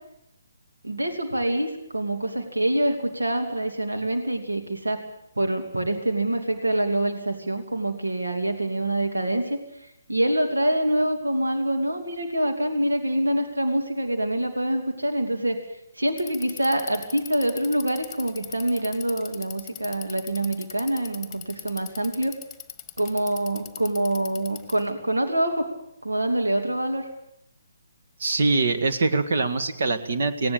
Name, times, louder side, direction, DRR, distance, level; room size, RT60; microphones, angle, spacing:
voice 1, 0.8-5.0 5.4-9.6 10.1-15.6 16.0-22.4 23.0-25.7 26.0-27.0, right 1 dB, 80° right, 4 dB, 2.8 m, -25 dB
Bicycle, 16.1-24.9, left 11 dB, 15° left, 1.6 m, -40 dB
voice 2, 28.2-30.5, right 3 dB, 55° right, 9 dB, 1.9 m, -23 dB
19.0 x 17.5 x 8.6 m, 0.78 s
figure-of-eight pair, 140°, 0 cm